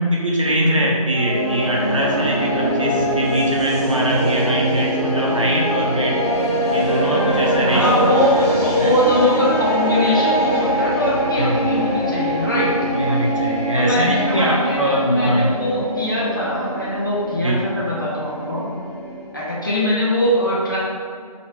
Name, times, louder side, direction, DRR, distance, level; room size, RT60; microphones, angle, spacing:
voice 1, 0.1-6.2 6.7-8.1 8.8-8.9 11.3-11.7 12.9-15.5 17.4-17.6, right 1 dB, 55° right, -3 dB, 0.9 m, -22 dB
sound 1, 1.1-19.3, right 1 dB, 15° left, 1.5 m, -22 dB
voice 2, 7.7-12.7 13.7-18.7 19.3-20.8, left 1 dB, 35° left, -8 dB, 1.2 m, -21 dB
4.7 x 3.0 x 3.3 m, 2.1 s
figure-of-eight pair, 170°, 19 cm